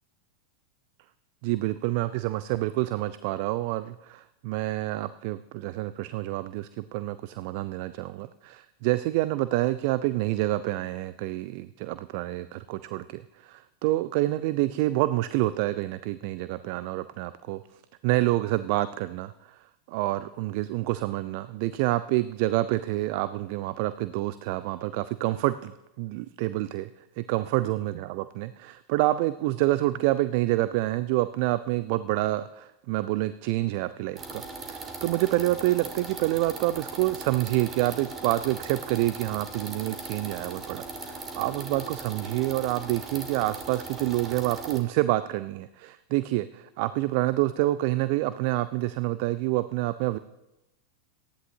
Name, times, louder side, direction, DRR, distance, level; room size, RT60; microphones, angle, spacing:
voice 1, 1.4-17.6 18.0-19.6 19.9-26.9 27.2-34.4 34.7-50.2, right 17 dB, 45° right, 15 dB, 0.4 m, -27 dB
sound 1, 34.2-44.8, right 3 dB, 20° right, 2.0 m, -39 dB
18.5 x 13.5 x 2.7 m, 0.94 s
figure-of-eight pair, 90°, 0 cm